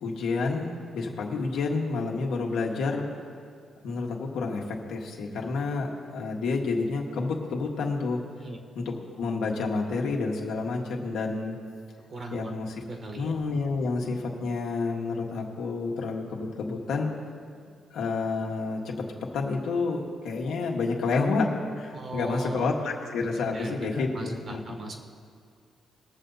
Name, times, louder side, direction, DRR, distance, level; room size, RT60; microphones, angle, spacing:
voice 1, 0.0-3.0 3.8-8.2 8.7-11.5 12.3-12.7 13.1-17.1 17.9-18.9 19.3-21.5 21.8-24.6, left 3 dB, 85° left, 0 dB, 1.6 m, -29 dB
voice 2, 12.1-12.5 12.9-13.3 21.9-22.6 23.4-25.0, right 2 dB, 45° right, 3 dB, 1.5 m, -38 dB
20.5 x 6.9 x 4.0 m, 2.2 s
cardioid pair, 100°, 0 cm